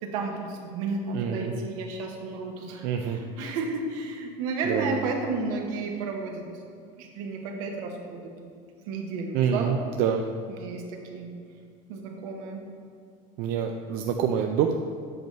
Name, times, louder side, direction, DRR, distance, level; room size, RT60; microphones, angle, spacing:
voice 1, 0.0-6.4 7.0-8.6 8.9-9.8 10.5-11.3 11.9-12.7, right 3 dB, 80° right, 2 dB, 1.0 m, -33 dB
voice 2, 1.1-1.5 2.8-3.2 4.7-5.1 9.3-10.2 13.4-14.7, right 8 dB, 65° right, 4 dB, 0.4 m, -26 dB
7.9 x 3.1 x 5.2 m, 2.2 s
supercardioid pair, 105°, 17 cm